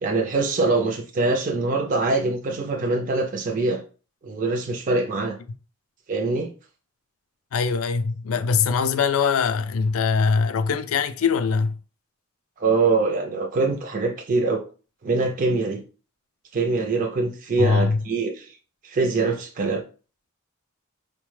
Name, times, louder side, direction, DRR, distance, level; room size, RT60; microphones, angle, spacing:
voice 1, 0.0-3.8 4.2-5.4 6.1-6.5 12.6-14.7 15.0-15.8 16.5-18.6 18.8-19.8, right 3 dB, 40° right, 0.4 m, -23 dB
voice 2, 7.5-11.8 17.6-18.0, left 5 dB, 75° left, 0.4 m, -22 dB
4.2 x 2.1 x 3.1 m
head